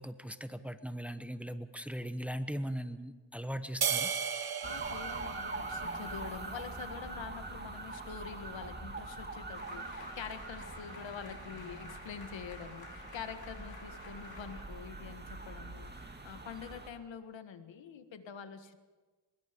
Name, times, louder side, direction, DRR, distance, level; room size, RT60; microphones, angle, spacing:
voice 1, 0.0-4.1, equal, 5° right, 10 dB, 1.1 m, -39 dB
sound 1, 3.8-6.4, right 7 dB, 55° right, 1.2 m, -35 dB
voice 2, 4.6-18.8, left 7 dB, 85° left, 9 dB, 1.7 m, -46 dB
sound 2, 4.6-16.9, right 2 dB, 25° right, 2.3 m, -43 dB
sound 3, 9.5-14.6, left 3 dB, 55° left, 5.6 m, -53 dB
23.5 x 22.0 x 5.2 m, 1.3 s
cardioid pair, 95°, 44 cm